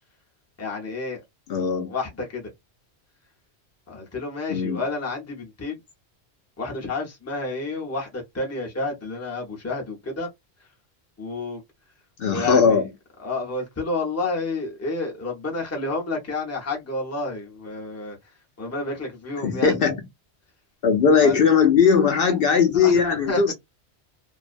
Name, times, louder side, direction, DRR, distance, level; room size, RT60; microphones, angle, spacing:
voice 1, 0.6-1.2 1.9-2.4 3.9-5.8 6.6-10.3 11.2-11.6 12.3-12.8 13.2-18.2 18.6-19.7 21.2-21.4 22.7-23.0 23.3-23.4, left 3 dB, 15° left, 0.7 m, -30 dB
voice 2, 1.5-1.9 4.5-4.8 12.2-12.9 19.4-20.0 20.8-23.5, left 6 dB, 60° left, 0.8 m, -19 dB
2.5 x 2.1 x 2.4 m
omnidirectional pair, 1.1 m